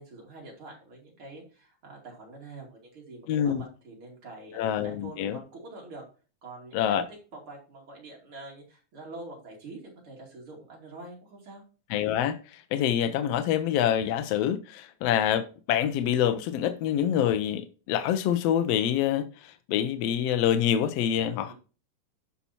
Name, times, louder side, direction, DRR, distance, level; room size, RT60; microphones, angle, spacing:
voice 1, 0.0-6.1 6.4-11.6 21.4-21.5, right 2 dB, 40° right, 3.3 m, -45 dB
voice 2, 3.3-3.6 4.5-5.4 6.7-7.0 11.9-21.5, left 10 dB, 80° left, 1.4 m, -26 dB
11.5 x 5.7 x 2.8 m
omnidirectional pair, 3.7 m